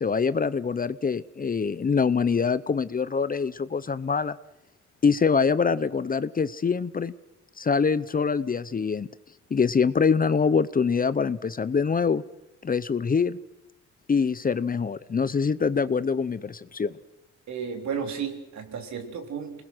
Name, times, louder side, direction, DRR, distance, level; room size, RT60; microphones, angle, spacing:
voice 1, 0.0-4.4 5.0-7.1 7.6-9.1 9.5-12.2 12.6-13.4 14.1-16.9, left 5 dB, 30° left, 16 dB, 0.7 m, -24 dB
voice 2, 17.5-19.6, right 6 dB, 65° right, 4 dB, 3.7 m, -33 dB
27.5 x 20.5 x 6.3 m, 0.93 s
cardioid pair, 90°, 30 cm